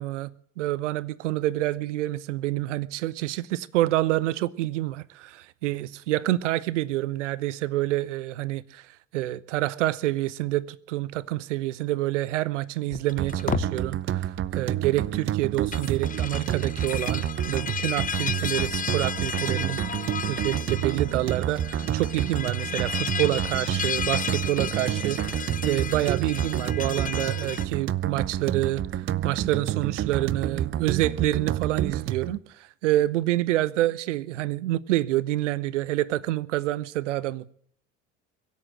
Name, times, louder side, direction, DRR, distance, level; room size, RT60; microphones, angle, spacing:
voice 1, 0.0-19.8 20.3-37.5, right 16 dB, 70° right, 0.6 m, -27 dB
sound 1, 12.9-13.7 15.5-27.7, left 7 dB, 20° left, 0.8 m, -33 dB
sound 2, 13.2-32.4, right 11 dB, 35° right, 0.7 m, -29 dB
23.0 x 8.3 x 7.4 m
figure-of-eight pair, 60°, 38 cm